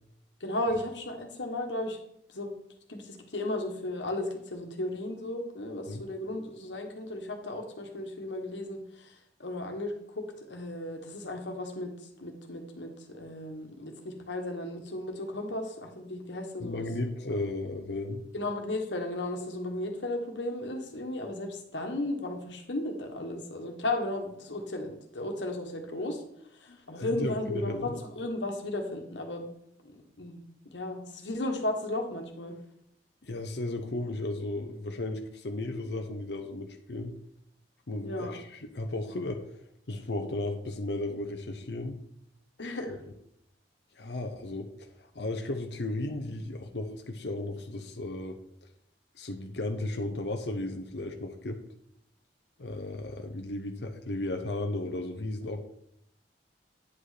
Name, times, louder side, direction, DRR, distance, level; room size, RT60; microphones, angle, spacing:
voice 1, 0.4-2.0 2.3-2.5 2.9-11.9 12.2-16.8 17.3-17.4 18.3-26.2 26.5-29.5 29.9-30.4 30.7-32.5 38.0-38.4 42.6-43.0, left 1 dB, 90° left, 3 dB, 1.5 m, -35 dB
voice 2, 16.6-18.2 26.7-28.0 33.2-37.1 37.9-39.4 39.9-41.9 42.9-43.0 44.0-48.4 49.2-51.6 52.6-55.6, left 2 dB, 65° left, 4 dB, 0.8 m, -35 dB
9.5 x 5.2 x 4.2 m, 0.74 s
head